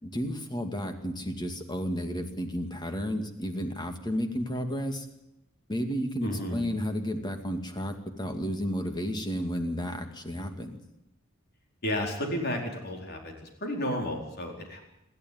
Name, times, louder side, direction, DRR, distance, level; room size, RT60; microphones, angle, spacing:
voice 1, 0.0-5.1 5.7-10.8, equal, 20° left, 6 dB, 2.3 m, -32 dB
voice 2, 6.2-6.6 11.8-14.8, equal, 50° left, 2 dB, 4.6 m, -32 dB
27.0 x 12.5 x 9.5 m, 0.87 s
head